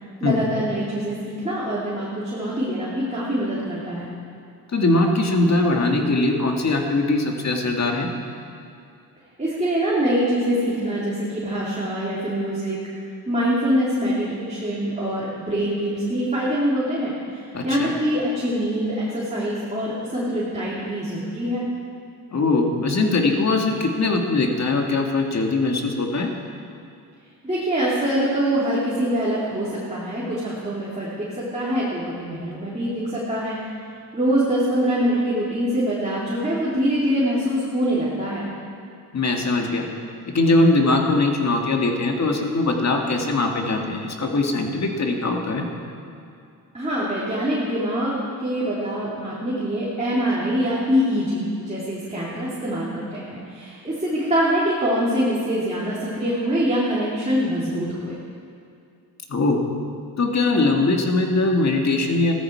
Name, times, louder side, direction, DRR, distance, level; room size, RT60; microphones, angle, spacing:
voice 1, 0.2-4.1 9.4-12.8 13.3-21.6 27.4-33.6 34.1-38.4 46.7-58.1, equal, 20° right, -8 dB, 3.3 m, -24 dB
voice 2, 4.7-8.1 17.5-17.9 22.3-26.3 39.1-39.9 40.3-45.7 59.3-59.6 60.2-62.3, left 2 dB, 45° left, 2 dB, 2.1 m, -21 dB
16.0 x 13.0 x 4.7 m, 2.5 s
cardioid pair, 75°, 38 cm